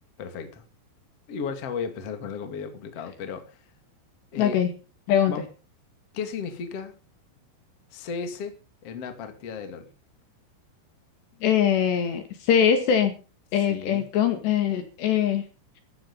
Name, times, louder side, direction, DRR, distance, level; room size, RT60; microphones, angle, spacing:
voice 1, 0.2-0.6 1.3-3.6 4.3-4.6 5.3-5.4 6.1-7.0 7.9-8.6 8.8-9.9 13.7-14.0, left 6 dB, 40° left, 7 dB, 2.6 m, -34 dB
voice 2, 4.4-4.7 5.1-5.4 11.4-13.2 13.5-15.5, left 8 dB, 65° left, 8 dB, 3.7 m, -22 dB
14.5 x 13.0 x 5.5 m, 0.34 s
omnidirectional pair, 5.9 m